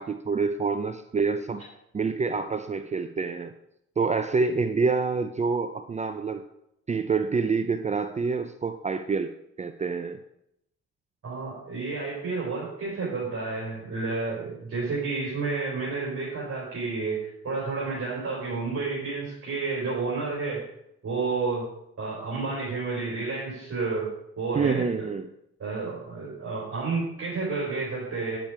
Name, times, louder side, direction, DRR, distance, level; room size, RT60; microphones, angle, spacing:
voice 1, 0.0-1.6 1.9-3.5 4.0-6.4 6.9-9.3 9.6-10.2 24.5-25.3, right 4 dB, 25° right, 9 dB, 0.5 m, -27 dB
voice 2, 11.2-20.6 21.0-21.7 22.0-24.1 24.4-25.1 25.6-28.4, right 4 dB, 50° right, -5 dB, 3.7 m, -30 dB
8.8 x 7.0 x 4.6 m, 0.79 s
cardioid pair, 90°, 30 cm